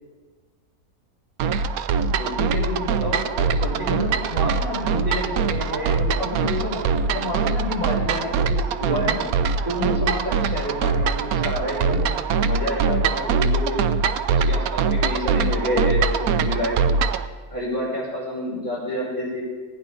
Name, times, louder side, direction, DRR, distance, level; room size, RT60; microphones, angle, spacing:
sound 1, 1.4-17.3, right 5 dB, 75° right, 1.1 m, -23 dB
voice 1, 2.2-9.2 9.6-12.1 12.4-13.8 14.3-16.8 17.5-19.4, left 1 dB, 20° right, -6 dB, 5.3 m, -28 dB
18.0 x 9.9 x 5.3 m, 1.5 s
omnidirectional pair, 1.6 m